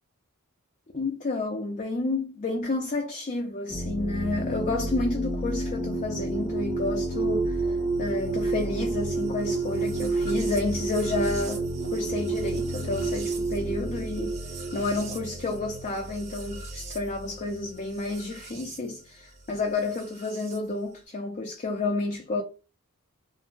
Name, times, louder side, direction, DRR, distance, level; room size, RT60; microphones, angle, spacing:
voice 1, 0.9-14.4 14.7-22.4, left 2 dB, 35° left, 0.4 m, -30 dB
sound 1, 3.7-18.8 19.9-20.6, right 2 dB, 30° right, 0.8 m, -30 dB
3.5 x 2.1 x 2.5 m
head